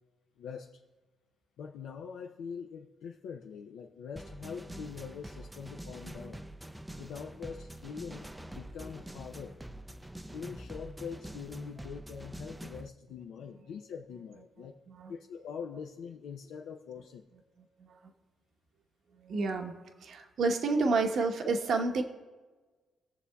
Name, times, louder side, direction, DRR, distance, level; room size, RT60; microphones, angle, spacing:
voice 1, 0.4-0.8 1.6-6.5 7.0-9.6 10.3-14.7 15.1-17.2, left 6 dB, 80° left, 2 dB, 0.5 m, -43 dB
sound 1, 4.2-12.9, right 1 dB, 10° right, 0.4 m, -45 dB
voice 2, 14.7-15.1 17.8-18.1 19.2-22.0, right 3 dB, 60° right, 4 dB, 1.0 m, -30 dB
20.0 x 6.9 x 2.3 m, 1.3 s
cardioid pair, 90°, 0 cm